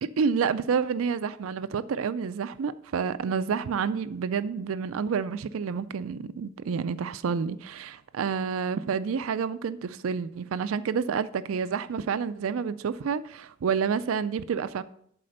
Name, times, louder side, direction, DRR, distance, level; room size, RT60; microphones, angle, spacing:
voice 1, 0.0-14.8, right 6 dB, 70° right, 0.4 m, -29 dB
11.5 x 4.3 x 6.4 m
head